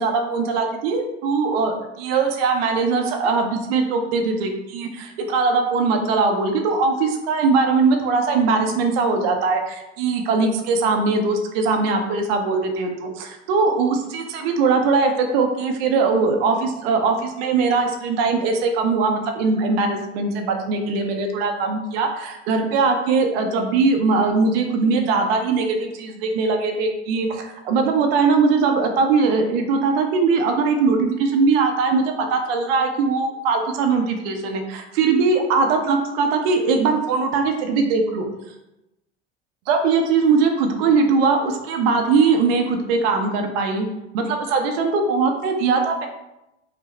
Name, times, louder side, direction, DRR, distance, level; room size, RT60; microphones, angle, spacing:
voice 1, 0.0-38.2 39.7-43.9 44.1-46.1, right 4 dB, 60° right, 4 dB, 0.7 m, -20 dB
4.9 x 2.0 x 3.1 m, 0.93 s
figure-of-eight pair, 65°, 34 cm